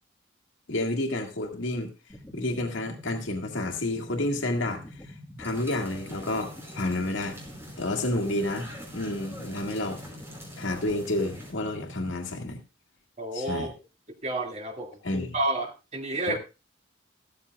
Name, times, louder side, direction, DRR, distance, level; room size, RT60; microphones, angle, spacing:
voice 1, 0.7-1.9 2.3-5.0 5.4-7.4 7.8-10.0 10.6-12.6 13.3-13.7 15.0-15.4 16.3-16.4, left 1 dB, 80° left, 2 dB, 1.9 m, -30 dB
sound 1, 2.1-12.1, left 1 dB, 10° left, 1.4 m, -46 dB
sound 2, 5.4-11.5, equal, 15° right, 4.8 m, -46 dB
voice 2, 13.2-13.7 14.2-15.0 15.3-16.4, right 2 dB, 35° right, 3 dB, 1.9 m, -30 dB
15.0 x 13.5 x 2.3 m, 0.29 s
head